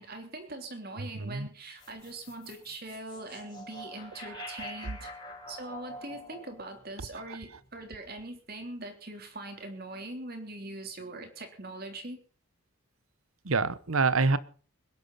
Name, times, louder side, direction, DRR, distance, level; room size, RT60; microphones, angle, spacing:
voice 1, 0.0-5.1 5.5-12.2, right 2 dB, 45° right, 5 dB, 3.4 m, -42 dB
voice 2, 1.0-1.5 4.3-4.6 7.1-7.4 13.4-14.4, right 4 dB, 75° right, 17 dB, 1.0 m, -28 dB
sound 1, 1.8-8.1, left 1 dB, 20° left, 5.0 m, -46 dB
21.0 x 11.0 x 5.6 m, 0.40 s
head